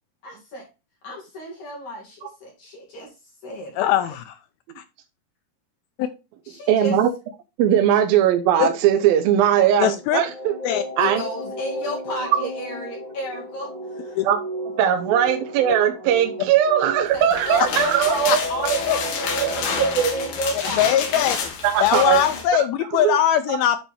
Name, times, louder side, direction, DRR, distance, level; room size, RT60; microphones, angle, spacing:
voice 1, 0.2-0.7 1.0-3.1 3.4-4.1 6.4-7.0 7.9-8.0 11.0-14.2 17.1-21.2, equal, 50° left, -3 dB, 3.3 m, -32 dB
voice 2, 3.8-4.3 4.8-4.9 6.0-6.1 8.6-8.7 9.8-10.2 10.6-10.8 14.2-14.3 18.3-18.4 18.9-19.0 20.8-21.5 21.8-23.8, left 11 dB, 80° left, 9 dB, 2.3 m, -20 dB
voice 3, 6.7-7.1 7.6-10.6 11.0-11.2 12.4-12.5 14.2-14.4 14.8-18.8 19.4-20.1 21.6-22.2 22.9-23.2, right 10 dB, 75° right, 6 dB, 2.3 m, -19 dB
sound 1, 9.7-20.3, equal, 10° left, 2.6 m, -34 dB
sound 2, 17.1-22.5, left 6 dB, 65° left, 3.3 m, -29 dB
9.9 x 4.3 x 3.3 m, 0.27 s
omnidirectional pair, 4.9 m